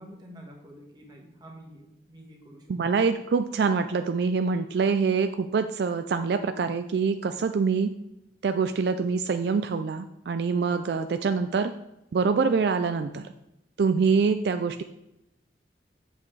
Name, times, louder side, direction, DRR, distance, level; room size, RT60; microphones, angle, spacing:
voice 1, 0.0-2.7 10.7-10.9, right 1 dB, 20° right, 0 dB, 1.4 m, -47 dB
voice 2, 2.7-7.9 8.4-11.7 12.1-13.3 13.8-14.8, right 5 dB, 65° right, 9 dB, 0.3 m, -25 dB
8.2 x 7.3 x 3.3 m, 0.88 s
head